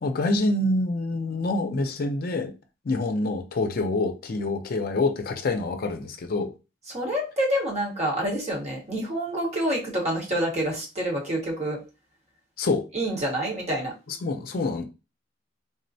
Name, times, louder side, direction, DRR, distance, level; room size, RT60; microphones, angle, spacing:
voice 1, 0.0-2.5 2.8-6.5 12.6-12.8 14.1-14.9, left 2 dB, 55° left, 0.5 m, -26 dB
voice 2, 6.9-11.8 12.9-13.9, right 1 dB, 40° right, 1.1 m, -27 dB
3.7 x 2.1 x 2.6 m
head